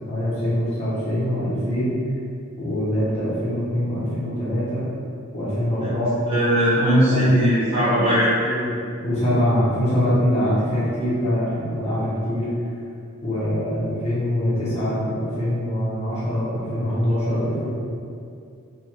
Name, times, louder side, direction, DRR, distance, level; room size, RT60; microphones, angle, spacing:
voice 1, 0.1-1.9 2.6-4.8 5.3-6.2 7.1-7.5 7.8-7.9 8.2-8.7 9.0-12.5 13.2-17.7, equal, 30° left, -10 dB, 0.8 m, -24 dB
voice 2, 6.3-8.3, equal, 25° right, -11 dB, 0.6 m, -18 dB
2.5 x 2.4 x 2.9 m, 2.5 s
head